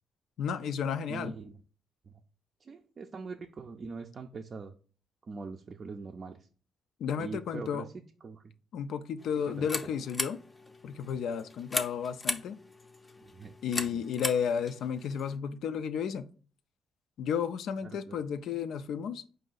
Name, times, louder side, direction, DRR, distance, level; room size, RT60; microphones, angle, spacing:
voice 1, 0.4-1.3 7.0-7.9 8.7-10.4 10.8-12.6 13.6-16.3 17.2-19.2, left 7 dB, 75° left, 0.3 m, -33 dB
voice 2, 1.1-1.6 2.0-2.2 2.6-4.7 5.2-6.5 7.2-8.5 9.5-9.7 13.2-14.1 17.8-18.2, right 4 dB, 40° right, 0.4 m, -43 dB
sound 1, 9.2-15.4, left 2 dB, 20° left, 0.5 m, -38 dB
4.7 x 2.6 x 3.9 m
cardioid pair, 90°, 0 cm